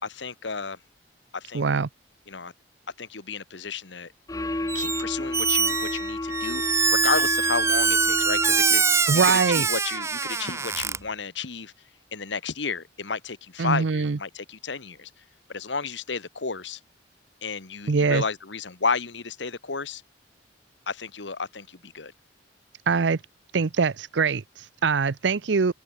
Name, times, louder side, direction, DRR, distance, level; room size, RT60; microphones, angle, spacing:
voice 1, 0.0-0.8 1.3-1.6 2.3-2.5 3.0-4.1 4.7-6.6 6.9-8.8 9.1-11.7 12.1-15.1 15.5-16.8 17.4-20.0 20.9-22.1, left 4 dB, 75° left, 1.5 m, -32 dB
voice 2, 1.5-1.9 9.1-9.7 13.6-14.2 17.9-18.2 22.9-23.2 23.5-25.7, right 5 dB, 70° right, 0.6 m, -23 dB
sound 1, 4.3-9.1, left 1 dB, 20° left, 0.8 m, -32 dB
Squeak, 4.7-5.0 5.3-11.0, right 5 dB, 15° right, 0.4 m, -24 dB
open air
head